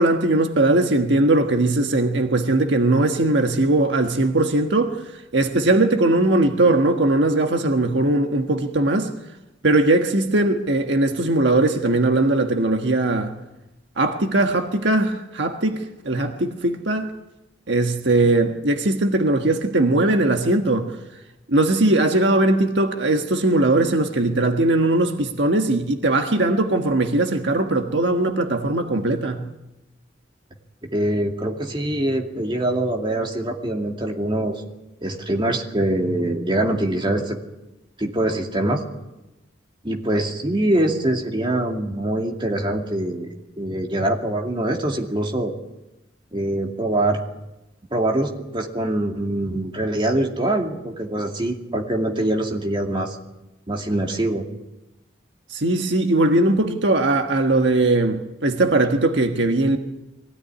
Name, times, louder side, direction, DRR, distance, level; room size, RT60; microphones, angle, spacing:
voice 1, 0.0-9.1 9.6-13.3 14.0-17.1 17.7-20.9 21.5-29.5 55.5-59.8, right 2 dB, 65° right, 1.5 m, -20 dB
voice 2, 30.9-34.6 35.0-37.4 38.0-38.8 39.8-43.3 43.6-45.5 46.3-47.2 47.9-53.2 53.7-54.5, right 1 dB, 25° right, 2.5 m, -23 dB
23.0 x 17.0 x 9.8 m
head